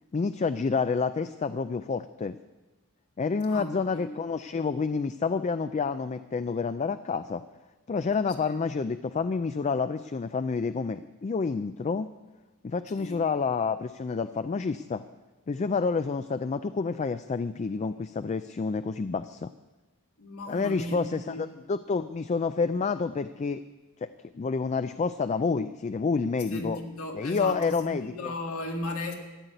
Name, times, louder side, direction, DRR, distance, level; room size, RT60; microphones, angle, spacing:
voice 1, 0.1-2.4 3.2-7.4 7.9-12.1 12.6-15.0 15.5-19.5 20.5-23.6 24.0-26.8 27.1-28.3, left 4 dB, 30° left, 11 dB, 0.4 m, -29 dB
voice 2, 3.5-4.2 8.4-8.6 13.0-13.2 20.2-21.4 26.5-29.1, left 1 dB, 80° left, 2 dB, 2.1 m, -36 dB
13.5 x 8.2 x 9.0 m, 1.1 s
head